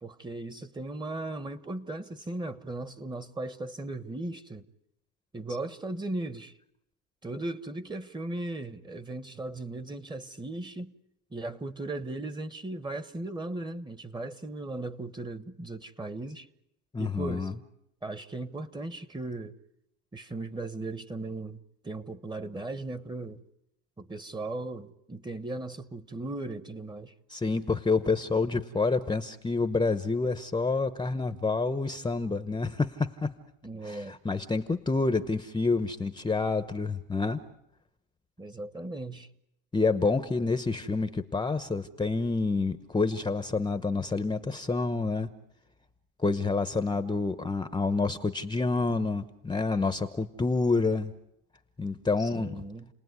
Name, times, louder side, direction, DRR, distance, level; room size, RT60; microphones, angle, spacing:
voice 1, 0.0-4.6 5.3-6.5 7.2-10.9 11.3-16.5 17.0-17.5 18.0-19.5 20.1-23.4 24.0-27.1 33.6-34.2 38.4-39.3 52.2-52.9, right 2 dB, 10° right, 1.2 m, -37 dB
voice 2, 16.9-17.5 27.3-33.3 33.8-37.4 39.7-45.3 46.2-51.1 51.8-52.5, left 3 dB, 10° left, 0.9 m, -28 dB
30.0 x 19.5 x 9.6 m
cardioid pair, 125°, 37 cm